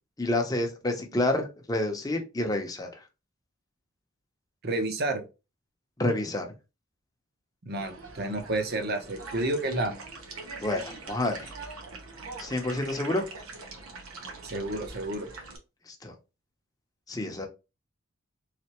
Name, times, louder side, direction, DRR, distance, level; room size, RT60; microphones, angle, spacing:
voice 1, 0.2-2.9 6.0-6.5 10.6-10.8 11.1-11.4 12.4-13.2 16.0-16.1 17.1-17.5, left 1 dB, 15° left, 0.7 m, -28 dB
voice 2, 4.6-5.2 7.6-10.0 14.4-15.3, right 2 dB, 50° right, 0.8 m, -30 dB
sound 1, 7.7-15.6, right 3 dB, 85° right, 1.1 m, -43 dB
3.8 x 3.3 x 2.9 m
head